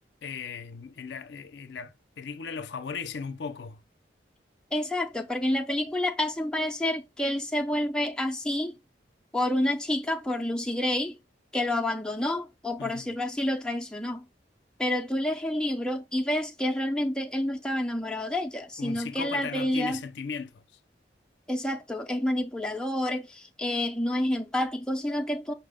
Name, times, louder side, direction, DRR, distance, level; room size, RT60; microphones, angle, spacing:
voice 1, 0.2-3.8 12.8-13.1 18.8-20.6, left 5 dB, 70° left, 0.4 m, -37 dB
voice 2, 4.7-8.8 9.3-11.2 11.5-14.3 14.8-20.0 21.5-25.5, left 1 dB, 5° left, 0.3 m, -29 dB
5.5 x 2.1 x 3.5 m
head